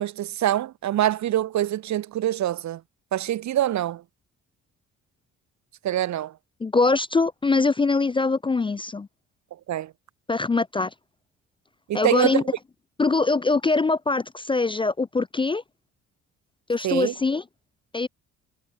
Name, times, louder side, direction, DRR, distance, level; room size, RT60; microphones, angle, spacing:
voice 1, 0.0-2.8 3.1-4.0 5.8-6.3 9.7-9.9 11.9-12.4 16.8-17.1, right 12 dB, 65° right, 1.2 m, -25 dB
voice 2, 6.6-9.1 10.3-10.9 11.9-12.4 13.0-15.6 16.7-17.4 17.9-18.1, left 3 dB, 15° left, 0.4 m, -23 dB
cardioid pair, 90°, 30 cm